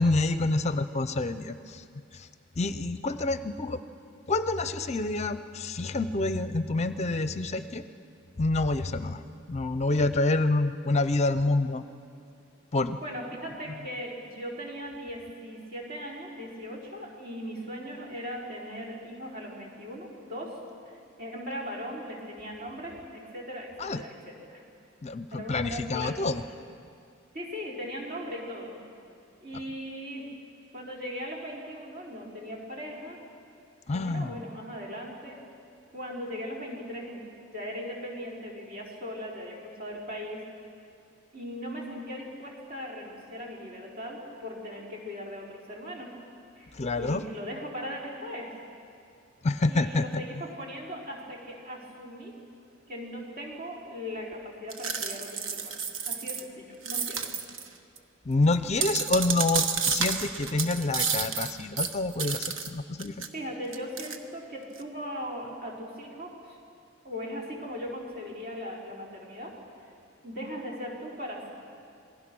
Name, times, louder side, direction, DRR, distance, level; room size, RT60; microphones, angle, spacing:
voice 1, 0.0-1.8 2.1-2.3 2.6-3.8 4.3-7.9 8.4-9.2 9.5-11.8 12.7-13.0 13.7-13.9 23.8-24.0 25.0-26.4 33.9-34.4 46.7-47.3 49.4-50.4 58.3-63.3, left 2 dB, 35° left, 12 dB, 0.6 m, -27 dB
voice 2, 13.0-20.6 20.8-20.9 21.2-24.6 25.3-26.2 27.3-28.8 29.4-30.3 30.7-33.2 33.9-35.4 35.9-37.2 37.5-40.4 41.3-46.1 46.6-48.6 49.7-52.3 52.9-57.3 63.3-66.6 67.0-69.5 69.8-69.9 70.2-71.5, equal, 50° right, -3 dB, 4.6 m, -39 dB
sound 1, 54.7-56.4 56.9-57.7 58.0-58.1 58.5-62.7 63.0-63.3 63.7-64.2, right 6 dB, 75° right, 1.3 m, -30 dB
27.0 x 20.0 x 6.2 m, 2.4 s
head